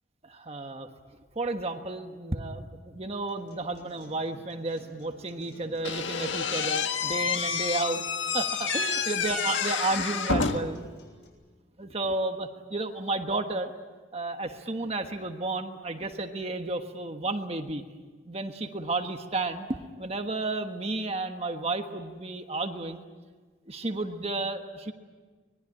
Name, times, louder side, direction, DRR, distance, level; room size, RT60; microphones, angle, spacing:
voice 1, 0.2-0.9 1.3-8.0 8.3-10.8 11.8-13.7 14.1-17.8 18.3-19.7 20.0-23.0 23.7-24.9, right 2 dB, 35° right, 5 dB, 1.4 m, -32 dB
Acoustic guitar, 3.3-11.3, left 1 dB, 65° left, 7.1 m, -55 dB
Slam / Squeak, 5.8-10.8, left 5 dB, 80° left, 1.6 m, -29 dB
25.0 x 21.0 x 9.9 m, 1.4 s
head